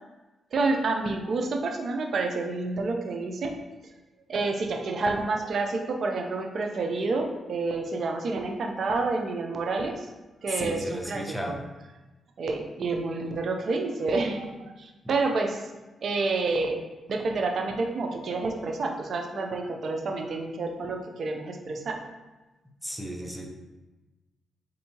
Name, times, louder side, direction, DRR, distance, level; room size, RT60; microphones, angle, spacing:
voice 1, 0.5-3.5 4.3-10.1 10.4-11.6 12.4-15.7 16.0-16.8 17.1-22.0, right 3 dB, 65° right, 3 dB, 0.5 m, -29 dB
voice 2, 10.6-11.6 22.8-23.5, equal, ahead, 1 dB, 0.6 m, -34 dB
4.4 x 2.7 x 2.8 m, 1.1 s
supercardioid pair, 55°, 0 cm